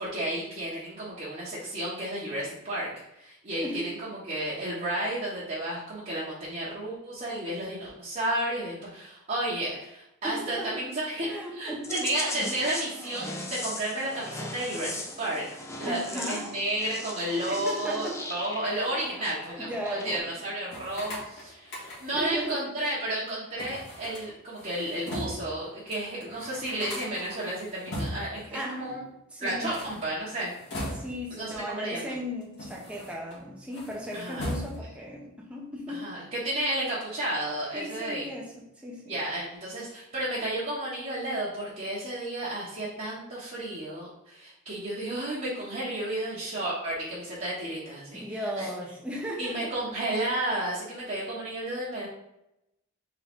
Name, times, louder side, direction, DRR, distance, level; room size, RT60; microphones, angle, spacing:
voice 1, 0.0-2.9 3.2-15.4 15.8-29.0 29.4-30.5 31.3-32.1 34.1-34.5 35.9-38.3 39.1-48.7 49.4-52.1, right 1 dB, 35° right, -10 dB, 1.1 m, -32 dB
voice 2, 10.2-10.9 11.2-12.0 15.8-16.5 17.5-18.2 18.7-18.9 19.6-20.2 22.1-22.7 28.5-29.8 30.9-36.1 37.7-39.2 48.1-49.8, equal, 5° right, -3 dB, 0.8 m, -36 dB
sound 1, 11.8-20.2, left 2 dB, 15° left, 0.5 m, -39 dB
sound 2, 20.7-22.3 23.6-25.5 25.9-26.0 26.2-28.4 29.5-31.4 32.1-33.4 33.7-35.0, equal, 55° left, 1.7 m, -39 dB
3.9 x 3.8 x 3.5 m, 0.86 s
head